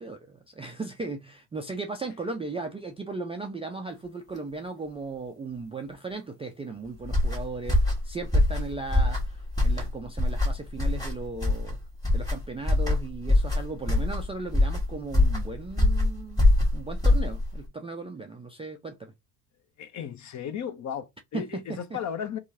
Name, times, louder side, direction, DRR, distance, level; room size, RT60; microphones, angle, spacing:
voice 1, 0.0-11.8 12.1-19.1 21.3-21.8, right 3 dB, 15° right, 0.3 m, -37 dB
sound 1, 7.0-17.7, left 2 dB, 10° left, 1.5 m, -24 dB
voice 2, 19.8-22.4, left 8 dB, 35° left, 0.6 m, -35 dB
2.8 x 2.4 x 2.6 m
supercardioid pair, 80°, 48 cm